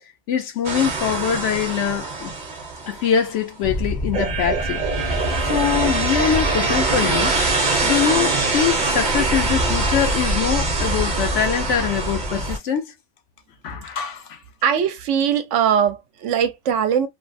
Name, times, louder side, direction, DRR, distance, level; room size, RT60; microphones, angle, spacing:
voice 1, 0.3-2.3 2.9-7.3 7.8-12.9 13.6-14.4, left 8 dB, 75° left, 1.0 m, -23 dB
sound 1, 0.6-3.3 4.1-12.6, right 3 dB, 40° right, 0.9 m, -24 dB
sound 2, 3.6-12.6, equal, ahead, 0.5 m, -28 dB
voice 2, 14.6-17.1, right 8 dB, 75° right, 1.0 m, -20 dB
3.3 x 2.0 x 2.5 m
omnidirectional pair, 1.3 m